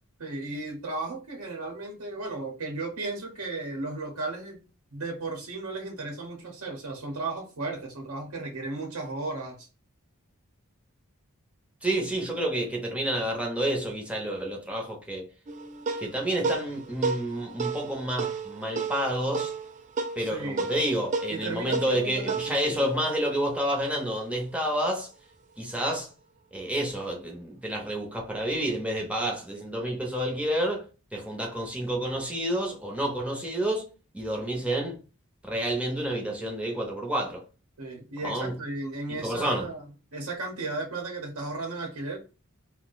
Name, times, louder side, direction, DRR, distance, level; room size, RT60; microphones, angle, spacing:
voice 1, 0.2-4.6 4.9-9.7 20.2-20.6 21.3-22.9 37.8-39.8 40.1-42.2, right 2 dB, 70° right, 0.8 m, -35 dB
voice 2, 11.8-15.3 16.0-19.5 20.1-25.1 25.6-26.1 26.5-33.9 34.1-35.0 35.4-37.4 38.2-38.6 39.1-39.7, right 1 dB, 5° right, 0.7 m, -29 dB
sound 1, 15.5-24.2, right 4 dB, 35° right, 0.4 m, -33 dB
2.6 x 2.1 x 3.9 m
head